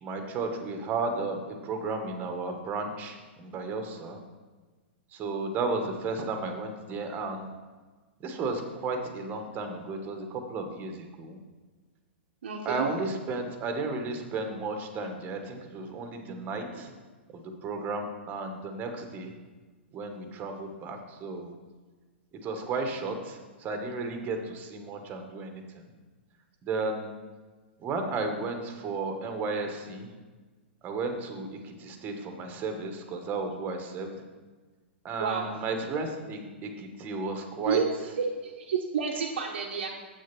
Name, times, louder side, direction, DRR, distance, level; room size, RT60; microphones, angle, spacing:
voice 1, 0.0-4.2 5.1-7.5 8.2-11.4 12.6-16.9 17.3-19.3 19.9-21.5 22.4-25.9 26.6-27.1 27.8-30.1 30.8-34.1 35.0-37.8, right 3 dB, 30° right, 5 dB, 1.5 m, -33 dB
voice 2, 12.4-12.9 35.2-35.5 37.7-37.8 38.2-39.9, right 6 dB, 65° right, -3 dB, 1.1 m, -30 dB
8.0 x 6.4 x 6.1 m, 1.3 s
figure-of-eight pair, 110°, 6 cm